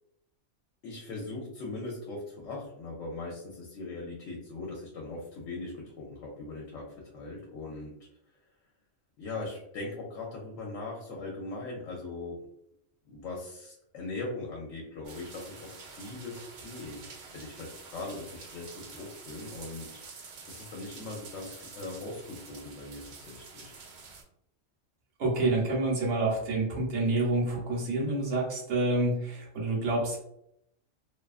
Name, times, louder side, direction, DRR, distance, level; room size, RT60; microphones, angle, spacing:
voice 1, 0.8-7.9 9.2-12.4 13.1-17.0 17.3-23.7, left 2 dB, 75° left, -2 dB, 0.9 m, -40 dB
sound 1, 15.0-24.2, right 4 dB, 85° right, 0.4 m, -48 dB
voice 2, 25.2-30.2, right 2 dB, 65° right, -3 dB, 1.1 m, -28 dB
2.5 x 2.3 x 2.3 m, 0.76 s
omnidirectional pair, 1.4 m